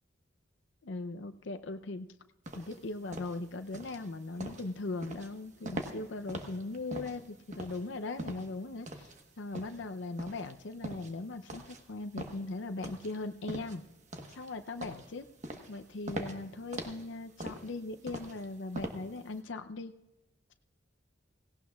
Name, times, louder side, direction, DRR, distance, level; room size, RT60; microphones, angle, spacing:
voice 1, 0.8-2.1 2.6-9.1 9.4-13.8 14.3-15.3 15.7-19.9, left 2 dB, 75° left, 8 dB, 0.6 m, -39 dB
sound 1, 2.5-19.4, right 1 dB, 40° right, 1.2 m, -43 dB
17.5 x 17.0 x 2.3 m, 0.99 s
head